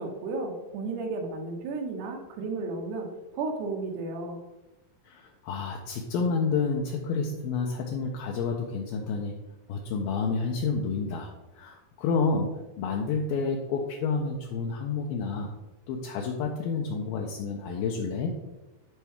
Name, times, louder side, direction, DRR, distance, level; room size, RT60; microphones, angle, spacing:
voice 1, 0.0-3.1 3.3-4.4, right 3 dB, 90° right, 1 dB, 3.1 m, -33 dB
voice 2, 5.0-9.3 9.7-15.5 15.9-18.3, left 4 dB, 80° left, 0 dB, 2.2 m, -29 dB
11.0 x 4.5 x 3.5 m, 1.0 s
omnidirectional pair, 4.6 m